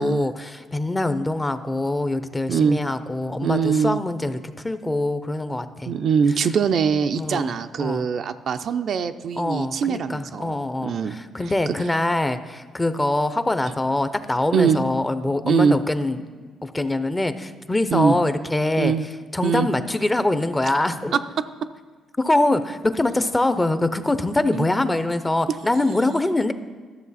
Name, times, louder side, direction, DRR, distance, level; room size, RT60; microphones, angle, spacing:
voice 1, 0.0-5.9 7.2-7.5 7.8-8.1 9.4-16.2 16.6-18.9 19.3-21.2 22.2-26.5, left 2 dB, 15° left, 11 dB, 0.6 m, -24 dB
voice 2, 2.5-2.8 3.4-4.0 5.9-11.2 11.4-11.7 14.5-14.8 15.4-15.8 17.9-18.2 18.8-19.1 19.4-19.7 24.5-24.7, right 6 dB, 60° right, 9 dB, 0.4 m, -22 dB
12.5 x 6.8 x 4.1 m, 1.5 s
cardioid pair, 85°, 0 cm